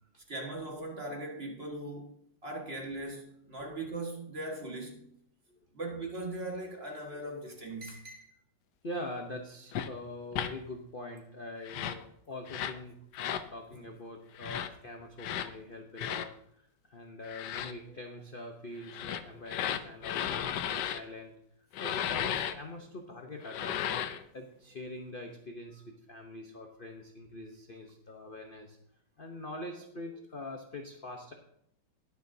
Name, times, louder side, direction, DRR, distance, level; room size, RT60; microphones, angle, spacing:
voice 1, 0.3-2.2 2.4-5.1 5.7-8.3, right 2 dB, 30° right, 1.8 m, -39 dB
voice 2, 8.8-21.3 21.8-28.8 29.2-31.3, left 1 dB, 45° left, 0.7 m, -44 dB
sound 1, 9.7-9.9 10.3-10.5 11.6-12.0 12.5-12.8 13.1-13.5 14.4-14.7 15.2-15.5 16.0-16.3 17.2-17.7 18.8-21.0 21.7-22.5 23.4-24.2, left 10 dB, 70° left, 1.1 m, -34 dB
20.0 x 7.0 x 2.8 m
omnidirectional pair, 2.2 m